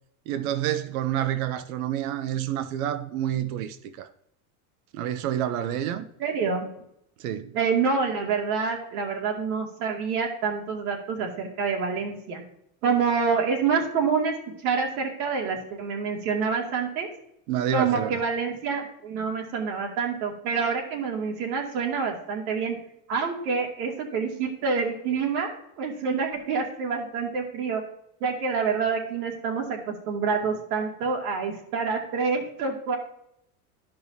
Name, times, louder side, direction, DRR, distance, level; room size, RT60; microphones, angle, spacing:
voice 1, 0.3-4.1 4.9-6.0 7.2-7.6 17.5-18.2, right 11 dB, 70° right, 0.8 m, -28 dB
voice 2, 6.2-6.7 7.5-12.4 12.8-14.3 14.6-17.1 17.7-22.8 23.1-27.8 28.2-33.0, right 5 dB, 90° right, 2.5 m, -27 dB
12.0 x 5.5 x 2.7 m
supercardioid pair, 175°, 44 cm